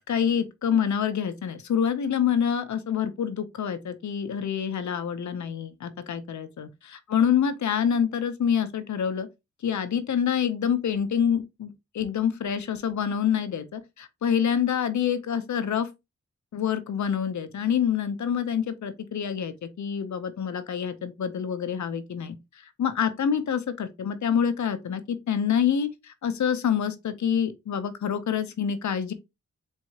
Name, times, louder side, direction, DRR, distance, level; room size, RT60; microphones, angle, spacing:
voice 1, 0.1-9.3 9.6-15.9 16.5-29.1, left 8 dB, 75° left, 0.7 m, -27 dB
4.7 x 3.4 x 2.8 m
cardioid pair, 65°, 29 cm